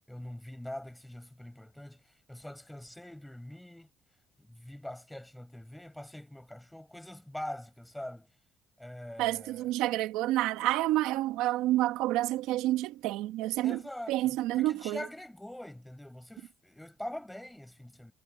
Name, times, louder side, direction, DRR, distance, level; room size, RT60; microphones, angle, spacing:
voice 1, 0.1-3.9 4.4-8.3 8.8-9.7 13.6-18.1, left 1 dB, 5° left, 5.9 m, -44 dB
voice 2, 9.2-13.8 14.1-15.0, right 16 dB, 85° right, 1.9 m, -29 dB
cardioid pair, 95°, 0 cm